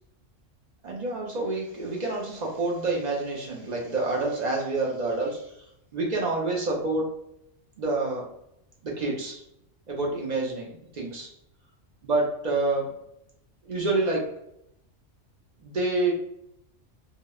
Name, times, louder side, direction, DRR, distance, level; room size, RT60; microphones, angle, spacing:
voice 1, 0.8-5.5 5.9-7.1 7.8-8.3 8.8-9.4 9.9-11.3 12.0-13.0 13.6-14.4 15.6-16.1, right 2 dB, 55° right, -2 dB, 0.5 m, -28 dB
2.9 x 2.0 x 2.2 m, 0.78 s
omnidirectional pair, 1.3 m